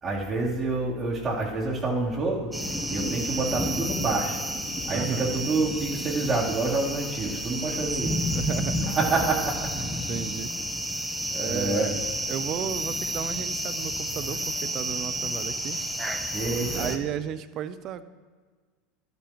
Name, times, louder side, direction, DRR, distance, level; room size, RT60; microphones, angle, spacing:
voice 1, 0.0-2.5 2.9-4.4 4.9-8.1 8.8-9.7 11.3-12.0 16.3-16.9, right 3 dB, 25° right, -4 dB, 3.5 m, -27 dB
sound 1, 2.5-17.0, right 1 dB, 5° right, 1.1 m, -31 dB
voice 2, 4.8-5.2 7.8-8.9 10.1-10.5 11.3-11.9 12.3-15.8 16.7-18.0, right 10 dB, 45° right, 12 dB, 0.6 m, -34 dB
15.5 x 11.5 x 3.1 m, 1.5 s
hypercardioid pair, 80°, 0 cm